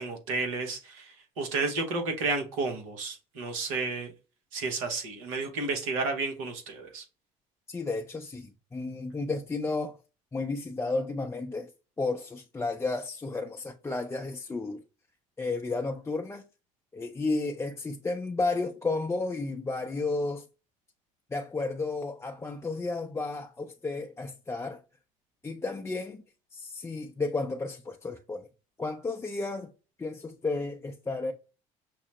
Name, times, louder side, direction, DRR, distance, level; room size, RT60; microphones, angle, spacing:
voice 1, 0.0-4.1 4.5-7.0, right 3 dB, 85° right, 1.0 m, -32 dB
voice 2, 7.7-10.0 10.3-11.7 12.0-14.8 15.4-16.4 16.9-20.4 21.3-24.8 25.4-26.2 26.5-28.5 28.8-29.7 30.0-31.3, left 3 dB, 15° left, 0.5 m, -32 dB
5.8 x 2.0 x 2.9 m
hypercardioid pair, 60°, 17 cm